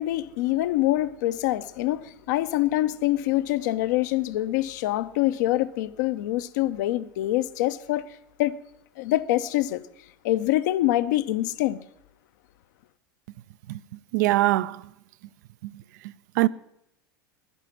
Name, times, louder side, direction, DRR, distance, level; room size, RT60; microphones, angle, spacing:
voice 1, 0.0-8.0 8.4-8.6 9.0-9.8 10.2-11.8, left 15 dB, 55° left, 0.7 m, -25 dB
voice 2, 14.1-14.8 15.6-15.7 16.0-16.5, right 18 dB, 55° right, 0.5 m, -23 dB
11.0 x 10.5 x 9.4 m
figure-of-eight pair, 80°, 11 cm